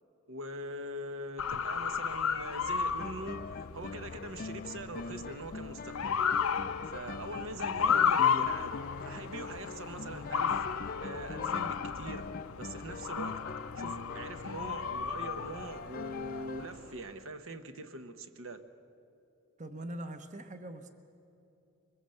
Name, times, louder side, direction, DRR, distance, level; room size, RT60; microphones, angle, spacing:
voice 1, 0.3-6.2 6.8-12.3 12.6-13.4 13.8-18.6, right 1 dB, 65° right, 9 dB, 1.1 m, -43 dB
Motor vehicle (road) / Siren, 1.4-16.9, left 7 dB, 75° left, 0.7 m, -34 dB
sound 1, 3.0-16.7, left 4 dB, 40° left, 0.4 m, -43 dB
voice 2, 19.6-20.9, right 1 dB, 35° right, 8 dB, 1.0 m, -42 dB
23.0 x 21.0 x 7.8 m, 2.8 s
head